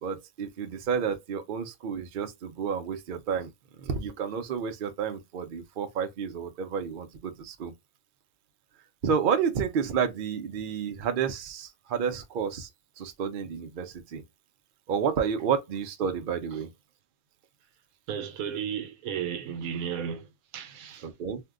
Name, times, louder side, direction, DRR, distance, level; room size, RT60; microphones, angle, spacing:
voice 1, 0.0-3.5 3.8-7.7 9.0-12.7 13.0-14.2 14.9-16.7 21.0-21.4, right 7 dB, 60° right, 0.5 m, -30 dB
voice 2, 18.1-21.1, right 8 dB, 80° right, 1.0 m, -34 dB
2.7 x 2.2 x 3.5 m
omnidirectional pair, 1.5 m